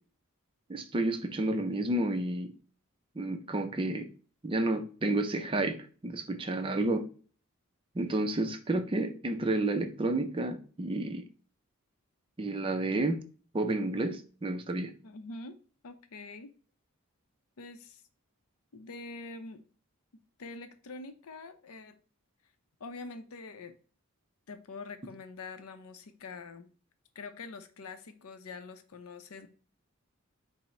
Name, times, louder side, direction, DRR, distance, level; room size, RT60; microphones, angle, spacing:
voice 1, 0.7-2.5 3.2-4.1 4.4-7.1 7.9-11.2 12.4-13.2 13.5-14.9, right 2 dB, 25° right, 0.4 m, -30 dB
voice 2, 15.0-15.6 15.8-16.5 17.6-18.0 18.7-19.6 20.4-21.9 22.8-23.7 24.5-26.7 27.2-29.5, left 3 dB, 75° left, 0.6 m, -45 dB
5.6 x 2.1 x 4.1 m
head